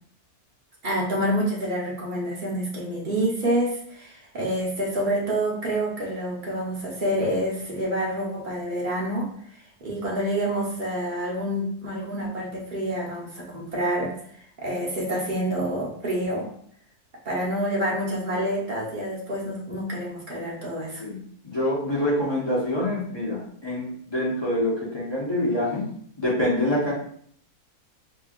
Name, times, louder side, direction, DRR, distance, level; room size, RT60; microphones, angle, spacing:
voice 1, 0.8-9.3 9.8-14.1 14.6-16.5 17.2-21.0, right 1 dB, 35° right, -4 dB, 1.1 m, -27 dB
voice 2, 21.4-25.9 26.2-26.9, left 1 dB, 20° left, -7 dB, 0.9 m, -26 dB
4.4 x 3.0 x 2.5 m, 0.63 s
omnidirectional pair, 1.7 m